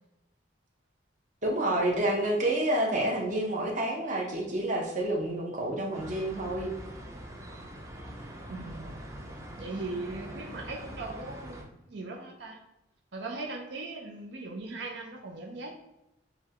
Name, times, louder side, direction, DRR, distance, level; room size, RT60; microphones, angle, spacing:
voice 1, 1.4-6.7, right 1 dB, 45° right, -1 dB, 0.8 m, -29 dB
sound 1, 5.9-11.6, equal, 15° right, 0.5 m, -43 dB
voice 2, 8.5-9.0 9.6-12.6 13.1-15.7, right 2 dB, 75° right, 1 dB, 0.6 m, -39 dB
6.8 x 2.3 x 2.9 m, 0.90 s
head